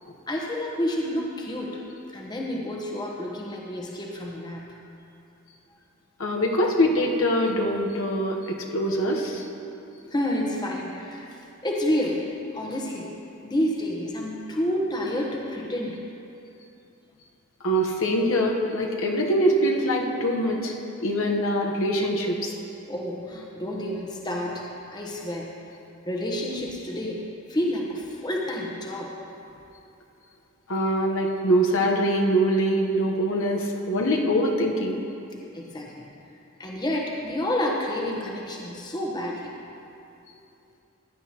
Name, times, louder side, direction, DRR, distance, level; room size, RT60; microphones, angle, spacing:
voice 1, 0.3-1.8 2.1-4.8 10.1-11.3 11.6-12.3 12.5-13.1 13.4-16.0 22.9-24.6 24.9-25.5 26.0-27.2 27.5-29.1 35.5-36.0 36.6-39.5, left 1 dB, 20° left, -1 dB, 1.1 m, -29 dB
voice 2, 6.2-9.4 17.6-20.7 21.0-22.5 30.7-35.0, equal, 70° left, 0 dB, 1.1 m, -23 dB
16.0 x 10.5 x 3.0 m, 2.6 s
head